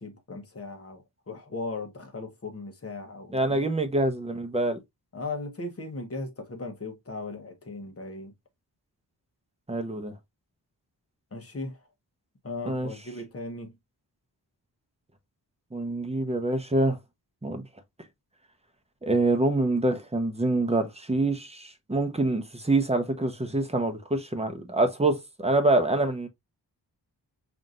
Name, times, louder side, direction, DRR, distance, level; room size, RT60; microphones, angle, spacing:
voice 1, 0.0-3.7 5.1-8.3 11.3-11.8 12.4-13.7, left 3 dB, 35° left, 1.0 m, -37 dB
voice 2, 3.3-4.8 9.7-10.1 12.6-12.9 15.7-17.0 17.4-17.6 19.0-26.3, right 2 dB, 15° right, 0.8 m, -26 dB
5.7 x 2.6 x 2.4 m
wide cardioid pair, 95°, 42 cm